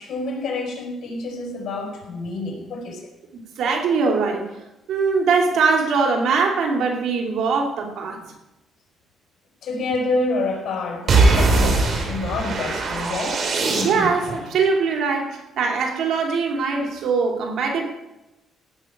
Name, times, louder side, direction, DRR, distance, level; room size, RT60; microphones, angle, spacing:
voice 1, 0.0-3.0 9.6-13.4, left 3 dB, 65° left, 2 dB, 4.8 m, -28 dB
voice 2, 3.3-4.4 4.9-8.2 13.8-17.8, right 4 dB, 75° right, 2 dB, 3.1 m, -22 dB
sound 1, 11.1-14.3, right 3 dB, 55° right, 3.2 m, -20 dB
17.0 x 6.2 x 8.6 m, 0.96 s
cardioid pair, 90°, 0 cm